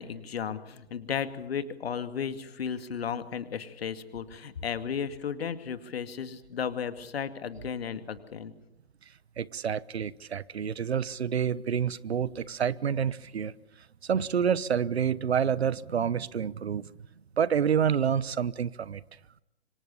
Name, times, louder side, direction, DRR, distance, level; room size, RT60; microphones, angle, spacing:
voice 1, 0.0-8.5, left 7 dB, 65° left, 2.3 m, -34 dB
voice 2, 9.4-13.5 14.0-16.9 17.4-19.0, right 8 dB, 70° right, 1.1 m, -28 dB
26.5 x 25.5 x 6.9 m
figure-of-eight pair, 120°, 33 cm